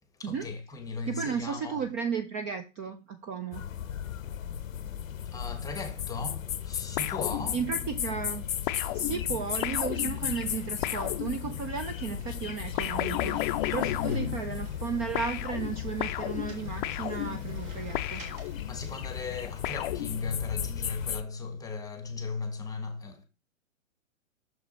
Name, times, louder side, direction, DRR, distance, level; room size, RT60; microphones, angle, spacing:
voice 1, 0.2-1.8 5.3-7.6 13.8-14.3 18.4-23.3, left 4 dB, 10° left, 1.0 m, -37 dB
voice 2, 1.1-3.6 7.5-8.5 8.9-13.4 13.7-18.2, right 6 dB, 25° right, 0.5 m, -34 dB
sound 1, 3.5-21.2, left 9 dB, 85° left, 0.7 m, -35 dB
sound 2, 7.0-8.0 8.7-11.8 12.8-14.9 15.2-18.9 19.6-20.6, left 15 dB, 40° left, 0.5 m, -34 dB
sound 3, 10.4-19.3, right 5 dB, 40° right, 1.8 m, -54 dB
6.3 x 4.7 x 4.0 m
hypercardioid pair, 120°, 39 cm